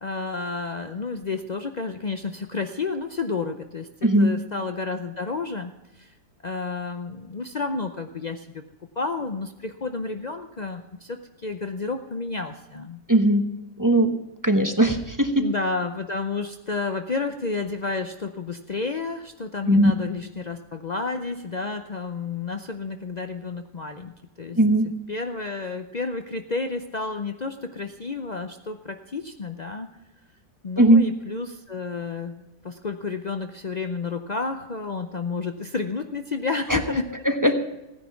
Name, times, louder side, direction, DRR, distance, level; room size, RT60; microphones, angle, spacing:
voice 1, 0.0-6.1 6.4-8.6 9.0-13.0 15.4-24.6 25.1-29.9 30.6-37.1, left 4 dB, 80° left, 7 dB, 0.3 m, -31 dB
voice 2, 4.0-4.3 13.1-13.5 13.8-14.1 14.4-15.5 19.7-19.9 24.6-24.9 30.8-31.1 36.7-36.8 37.4-37.6, right 1 dB, 15° right, 6 dB, 0.8 m, -18 dB
16.0 x 10.0 x 5.7 m, 0.99 s
omnidirectional pair, 1.8 m